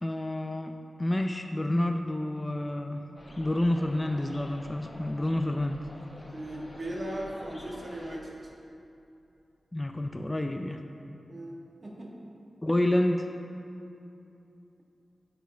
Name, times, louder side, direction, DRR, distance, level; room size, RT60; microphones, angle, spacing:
voice 1, 0.0-3.0 3.4-5.8 9.7-10.8 12.6-13.3, left 1 dB, 25° left, 5 dB, 0.4 m, -29 dB
sound 1, 3.2-8.2, left 1 dB, 40° left, 0.9 m, -48 dB
voice 2, 6.3-8.5 11.3-12.1, right 1 dB, 55° right, -3 dB, 1.5 m, -38 dB
12.0 x 4.5 x 3.4 m, 2.7 s
cardioid pair, 45°, 0 cm